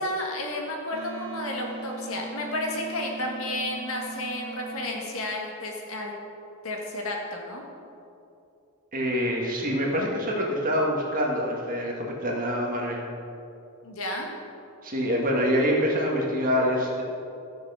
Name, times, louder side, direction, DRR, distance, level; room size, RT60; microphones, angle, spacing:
voice 1, 0.0-6.1 6.6-7.6 13.8-14.3, left 1 dB, 70° left, 0 dB, 1.7 m, -32 dB
Wind instrument woodwind instrument, 0.9-5.1, right 3 dB, 80° right, 0.9 m, -39 dB
voice 2, 8.9-13.0 14.8-17.0, equal, 40° right, -1 dB, 1.7 m, -25 dB
13.0 x 6.6 x 5.6 m, 2.7 s
head